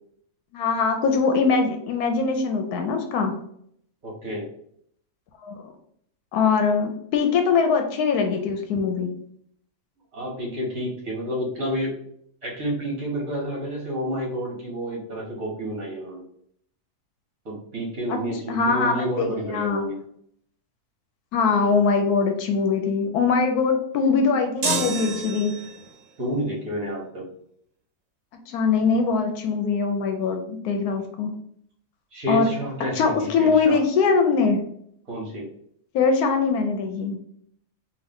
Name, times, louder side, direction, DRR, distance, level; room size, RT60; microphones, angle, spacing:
voice 1, 0.5-3.3 5.4-5.6 6.3-9.1 18.1-18.2 18.5-19.9 21.3-25.5 28.5-31.3 32.3-32.5 32.9-34.6 35.9-37.2, left 5 dB, 75° left, 5 dB, 1.1 m, -22 dB
voice 2, 4.0-4.5 10.1-11.9 12.4-16.2 17.5-20.0 26.2-27.3 32.1-33.8 35.1-35.4, equal, 60° right, -4 dB, 1.7 m, -29 dB
sound 1, 24.6-25.9, right 3 dB, 75° right, 1.3 m, -28 dB
3.7 x 2.6 x 3.5 m, 0.68 s
omnidirectional pair, 1.7 m